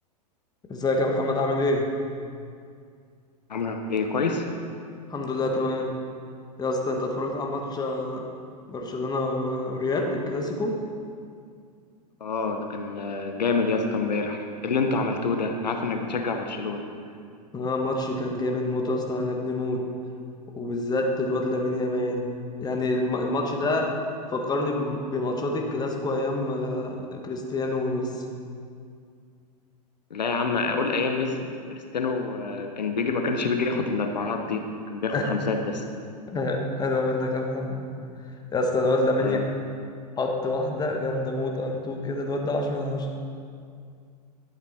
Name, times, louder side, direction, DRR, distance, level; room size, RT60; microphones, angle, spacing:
voice 1, 0.7-1.9 5.1-6.0 6.6-8.2 8.7-10.7 17.5-19.8 20.6-22.3 22.6-23.9 24.3-28.2 35.1-35.3 36.3-37.8 38.5-39.4 40.2-43.1, left 2 dB, 20° left, 2 dB, 1.3 m, -27 dB
voice 2, 3.5-4.5 12.2-16.9 30.1-35.8 39.2-39.4, left 4 dB, 80° left, 5 dB, 0.9 m, -27 dB
11.5 x 8.2 x 4.3 m, 2.3 s
hypercardioid pair, 100°, 21 cm